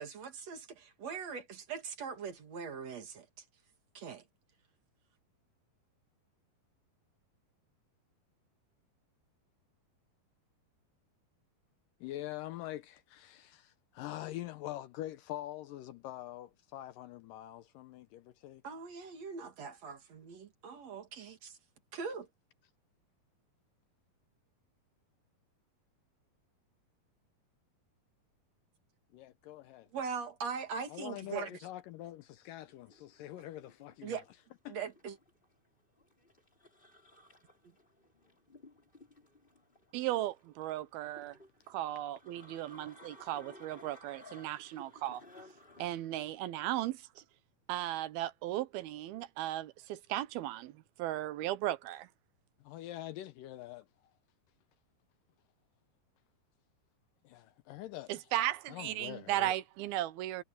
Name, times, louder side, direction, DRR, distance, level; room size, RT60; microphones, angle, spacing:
voice 1, 0.0-3.3 3.9-4.2 18.6-21.6 21.9-22.3 29.9-31.5 34.0-34.3 34.7-35.2, right 6 dB, 50° right, 2.8 m, -41 dB
voice 2, 12.0-18.6 29.1-29.9 30.9-34.2 34.7-34.8 52.6-54.1 57.2-58.2 58.7-59.5, left 14 dB, 75° left, 2.1 m, -44 dB
sound 1, 32.7-45.9, left 1 dB, 15° left, 5.1 m, -58 dB
voice 3, 39.9-41.4 41.7-45.2 45.8-47.0 47.7-50.7 51.0-52.1 58.1-60.4, right 14 dB, 85° right, 2.8 m, -36 dB
omnidirectional pair, 4.4 m